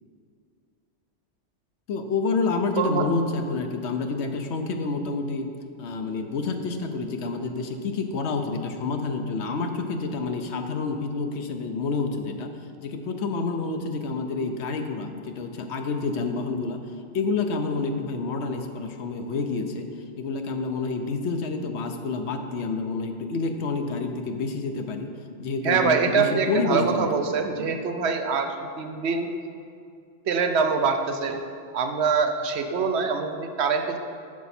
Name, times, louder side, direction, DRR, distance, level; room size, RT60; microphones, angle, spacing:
voice 1, 1.9-5.5 5.8-12.5 12.8-16.8 17.1-19.9 20.2-25.1 25.4-27.1, left 3 dB, 70° left, 6 dB, 1.0 m, -28 dB
voice 2, 25.6-29.3 30.3-31.4 31.7-34.0, right 5 dB, 65° right, 6 dB, 0.9 m, -24 dB
9.4 x 6.9 x 4.2 m, 2.4 s
omnidirectional pair, 1.2 m